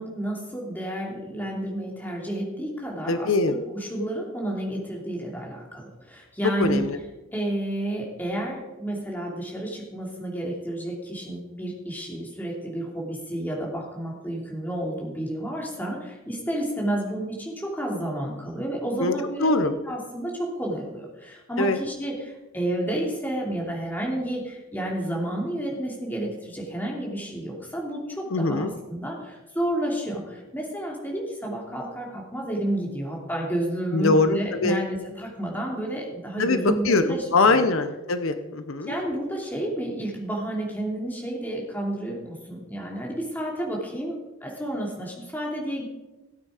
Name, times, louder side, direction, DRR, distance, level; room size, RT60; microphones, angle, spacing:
voice 1, 0.0-6.9 7.3-37.6 38.9-45.8, right 1 dB, 10° left, -2 dB, 2.9 m, -31 dB
voice 2, 3.1-3.6 6.6-7.0 19.0-19.1 19.4-19.7 21.6-21.8 28.3-28.7 33.9-34.8 36.4-38.9, left 3 dB, 75° left, 9 dB, 0.8 m, -22 dB
17.0 x 9.2 x 4.9 m, 1.1 s
head